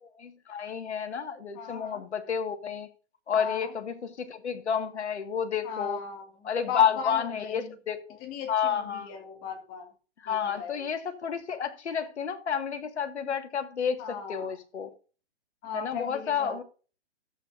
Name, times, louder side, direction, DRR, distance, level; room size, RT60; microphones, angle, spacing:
voice 1, 0.0-2.9 3.3-6.0 6.4-8.2 8.5-9.1 10.2-14.9 15.7-16.6, left 7 dB, 70° left, 2.0 m, -30 dB
voice 2, 1.5-2.0 3.4-3.7 5.6-7.7 8.2-9.9 10.3-10.9 14.0-14.5 15.6-16.6, left 7 dB, 25° left, 2.3 m, -38 dB
13.5 x 8.6 x 2.6 m
hypercardioid pair, 140°, 35 cm